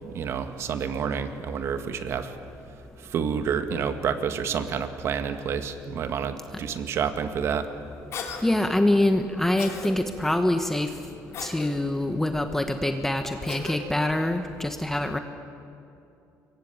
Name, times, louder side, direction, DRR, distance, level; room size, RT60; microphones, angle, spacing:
voice 1, 0.0-2.4 3.0-7.7, right 7 dB, 50° right, 8 dB, 1.9 m, -29 dB
Cough, 8.1-8.4 9.6-9.9 11.3-11.7 13.5-13.8, left 6 dB, 55° left, 3.4 m, -36 dB
voice 2, 8.4-11.0 11.4-15.2, left 1 dB, 5° left, 6 dB, 1.2 m, -25 dB
26.5 x 23.0 x 8.9 m, 2.7 s
cardioid pair, 140°, 6 cm